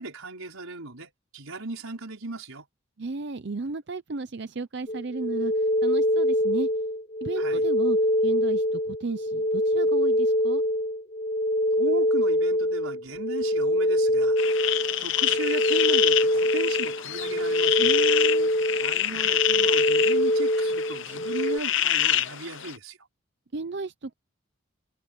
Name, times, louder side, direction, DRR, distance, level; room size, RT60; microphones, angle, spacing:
voice 1, 0.0-2.7 7.4-7.6 11.7-14.4 15.0-18.0 18.8-23.0, right 2 dB, 85° right, 5.3 m, -37 dB
voice 2, 3.0-5.5 5.8-6.7 7.2-8.0 8.2-10.6 17.8-18.5 23.5-24.1, right 3 dB, 55° right, 0.6 m, -34 dB
sound 1, 4.9-21.6, equal, 30° left, 0.7 m, -24 dB
sound 2, 14.4-22.8, left 12 dB, 65° left, 0.8 m, -27 dB
head